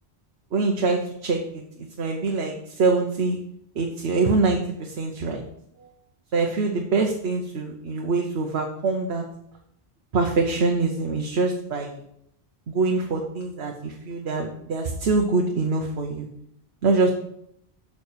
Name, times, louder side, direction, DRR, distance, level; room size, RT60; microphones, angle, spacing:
voice 1, 0.5-3.4 3.7-5.4 5.8-5.9 6.3-9.2 10.1-12.0 12.7-16.3 16.8-17.1, right 3 dB, 75° right, 2 dB, 1.2 m, -24 dB
7.0 x 6.0 x 6.6 m, 0.75 s
omnidirectional pair, 1.1 m